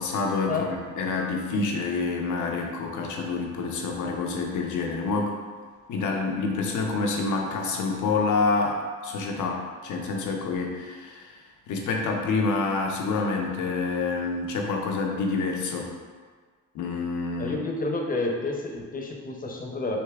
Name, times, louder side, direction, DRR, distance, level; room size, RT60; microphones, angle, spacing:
voice 1, 0.0-5.3 5.9-11.4 11.7-15.9 16.7-17.6, left 4 dB, 75° left, 1 dB, 0.8 m, -27 dB
voice 2, 17.4-20.0, left 2 dB, 30° left, 0 dB, 0.8 m, -30 dB
6.7 x 2.7 x 2.4 m, 1.5 s
cardioid pair, 90°, 30 cm